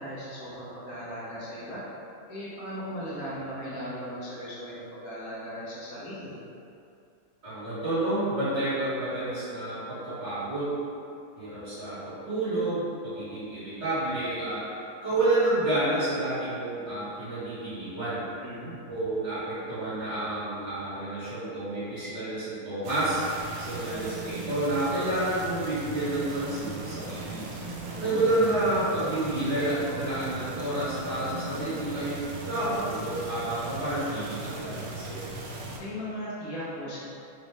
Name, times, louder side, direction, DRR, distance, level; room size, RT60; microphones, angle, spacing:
voice 1, 0.0-1.9 2.3-6.3 18.4-18.7 27.8-28.2 35.8-37.0, equal, 75° left, -8 dB, 1.6 m, -37 dB
voice 2, 7.4-10.7 11.4-14.7 15.0-18.2 18.9-23.2 23.6-27.5 28.0-32.2 32.5-35.2, right 1 dB, 50° right, -13 dB, 1.9 m, -29 dB
sound 1, 22.8-35.8, right 3 dB, 65° right, 0.8 m, -38 dB
4.1 x 2.6 x 3.5 m, 2.6 s
omnidirectional pair, 1.6 m